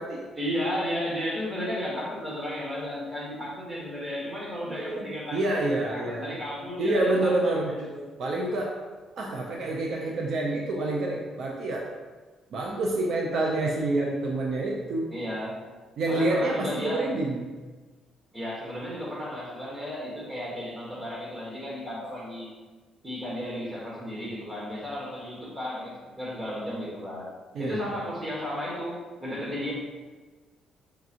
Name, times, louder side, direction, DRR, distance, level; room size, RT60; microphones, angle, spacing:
voice 1, 0.4-8.1 15.1-15.6 16.1-17.1 18.3-22.5 23.0-27.3 27.6-29.7, equal, 15° right, -5 dB, 1.4 m, -34 dB
voice 2, 4.6-6.4 6.8-7.7 8.2-8.7 9.2-11.9 12.5-15.1 16.0-17.4 27.5-27.8, right 2 dB, 60° right, -1 dB, 0.5 m, -28 dB
5.8 x 2.9 x 2.5 m, 1.3 s
cardioid pair, 120°, 0 cm